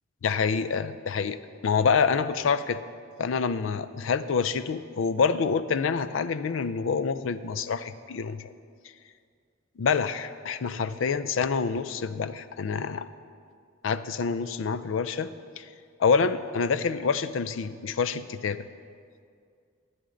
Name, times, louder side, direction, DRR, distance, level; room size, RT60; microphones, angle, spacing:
voice 1, 0.2-2.8 3.2-8.5 9.8-13.1 13.8-15.7 16.0-18.6, left 5 dB, 80° left, 14 dB, 0.4 m, -27 dB
14.0 x 9.5 x 3.8 m, 2.2 s
head